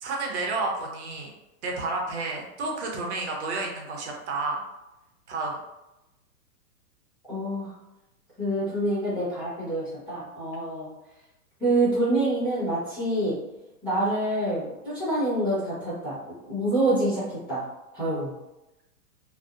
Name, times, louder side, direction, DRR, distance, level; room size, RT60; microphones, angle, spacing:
voice 1, 0.0-1.3 1.6-4.6 5.3-5.6, right 3 dB, 45° right, -1 dB, 0.6 m, -30 dB
voice 2, 7.3-7.7 8.4-10.9 11.6-13.4 13.8-16.2 16.5-17.6 17.9-18.3, right 1 dB, 5° right, -11 dB, 0.9 m, -26 dB
2.6 x 2.1 x 2.4 m, 0.96 s
hypercardioid pair, 155°, 46 cm